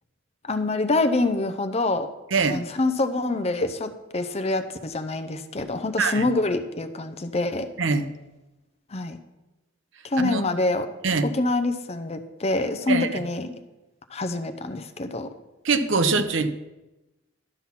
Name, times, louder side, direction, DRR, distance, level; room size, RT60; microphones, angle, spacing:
voice 1, 0.4-2.1 2.4-7.7 8.9-9.2 10.0-10.9 11.2-13.5 14.1-15.3, left 2 dB, 35° left, 9 dB, 0.7 m, -26 dB
voice 2, 2.3-2.6 6.0-6.3 7.8-8.1 10.2-10.4 11.0-11.3 12.9-13.1 15.6-16.5, right 4 dB, 75° right, 9 dB, 0.8 m, -23 dB
12.0 x 5.8 x 5.8 m, 1.0 s
head